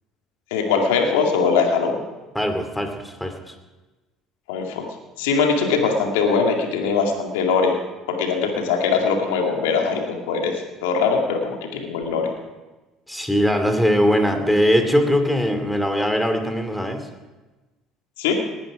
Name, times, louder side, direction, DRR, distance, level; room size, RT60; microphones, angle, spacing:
voice 1, 0.5-2.0 4.5-4.9 5.2-7.8 8.1-12.3 18.2-18.3, left 5 dB, 80° left, 3 dB, 2.2 m, -21 dB
voice 2, 2.3-3.6 13.1-17.1, equal, 5° left, 6 dB, 2.6 m, -21 dB
19.5 x 10.5 x 4.9 m, 1.2 s
hypercardioid pair, 65°, 0 cm